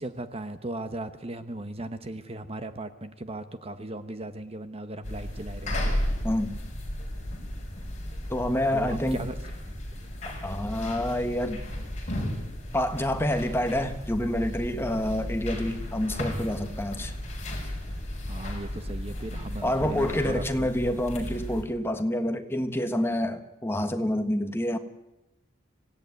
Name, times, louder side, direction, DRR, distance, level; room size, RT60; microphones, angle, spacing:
voice 1, 0.0-5.9 8.7-9.4 9.7-10.1 18.3-20.7, right 1 dB, 30° right, 10 dB, 1.1 m, -37 dB
sound 1, 5.0-21.6, left 1 dB, 35° left, 5.5 m, -34 dB
voice 2, 8.3-9.2 10.4-11.6 12.7-17.1 19.6-24.8, left 1 dB, 10° left, 7 dB, 1.5 m, -28 dB
25.5 x 17.0 x 9.5 m, 0.95 s
head